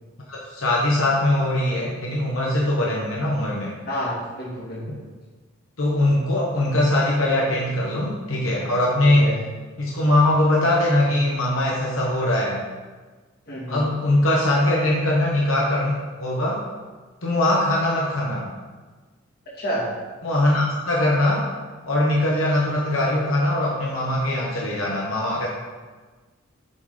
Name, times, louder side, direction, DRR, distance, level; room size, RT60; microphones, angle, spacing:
voice 1, 0.3-3.7 5.8-9.3 9.8-12.6 13.7-16.6 17.2-18.5 20.2-21.5 21.8-25.5, left 1 dB, 85° left, -3 dB, 1.1 m, -21 dB
voice 2, 3.9-5.0 9.0-9.4 13.5-13.9 19.6-19.9, equal, 50° left, -5 dB, 2.2 m, -29 dB
7.9 x 4.0 x 4.9 m, 1.3 s
head